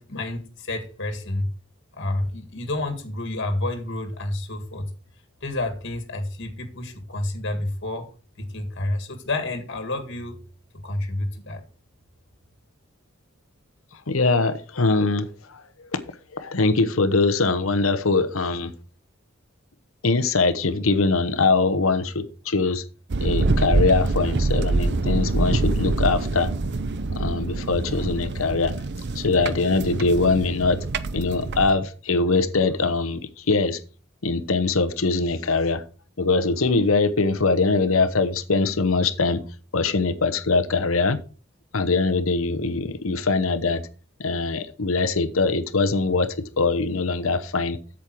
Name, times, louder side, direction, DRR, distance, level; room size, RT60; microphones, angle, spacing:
voice 1, 0.0-1.5 1.9-4.9 5.4-8.1 8.4-10.4 10.8-11.6, left 2 dB, 60° left, 1.9 m, -29 dB
voice 2, 14.1-15.6 15.9-16.0 16.3-18.7 20.0-22.8 23.2-26.5 27.1-28.7 29.1-30.8 31.1-33.8 34.2-35.8 36.2-39.4 39.7-41.2 41.7-43.8 44.2-47.8, left 3 dB, 80° left, 1.0 m, -22 dB
sound 1, 23.1-31.7, right 3 dB, 55° right, 0.7 m, -25 dB
8.5 x 7.4 x 4.6 m
head